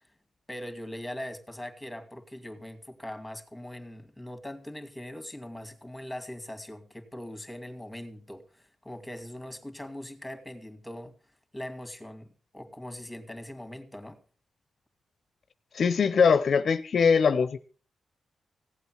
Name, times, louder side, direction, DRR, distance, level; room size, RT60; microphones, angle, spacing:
voice 1, 0.5-11.1 11.5-14.2, left 1 dB, 5° left, 2.4 m, -41 dB
voice 2, 15.7-17.6, left 6 dB, 65° left, 0.6 m, -22 dB
16.0 x 8.3 x 6.2 m
cardioid pair, 65°, 0 cm